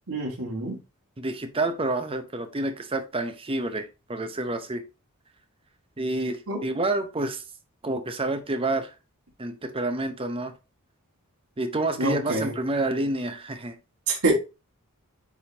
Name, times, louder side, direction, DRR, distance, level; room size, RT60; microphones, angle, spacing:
voice 1, 0.1-0.8 6.5-6.6 12.0-12.5 14.1-14.3, right 2 dB, 80° right, 2.0 m, -26 dB
voice 2, 1.2-4.8 6.0-7.4 7.8-8.9 9.4-10.5 11.6-13.8, right 2 dB, 25° right, 0.8 m, -28 dB
9.5 x 3.5 x 2.8 m
head